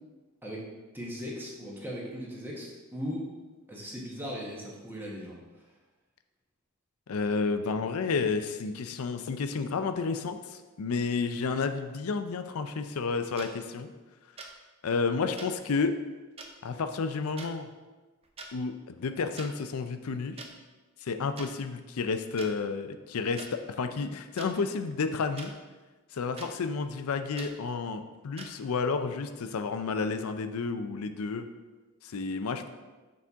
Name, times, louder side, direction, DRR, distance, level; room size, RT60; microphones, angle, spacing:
voice 1, 0.9-3.2 3.7-5.4, equal, 10° right, -4 dB, 1.1 m, -38 dB
voice 2, 7.1-13.9 14.8-16.0 16.6-17.7 18.5-20.4 21.0-25.5 26.1-31.5 32.0-32.7, left 4 dB, 85° left, 9 dB, 0.5 m, -31 dB
sound 1, 13.4-13.5 14.4-14.5 15.4-15.5 16.4-16.5 17.4-17.5 18.2-18.5 19.4-19.5 20.4-20.5 21.4-21.5 22.4-22.5 23.4-23.5 24.4-24.5 25.4-25.5 26.4-26.5 27.4-27.5 28.4-28.5, right 3 dB, 25° right, 0.6 m, -43 dB
6.6 x 4.2 x 3.6 m, 1.2 s
head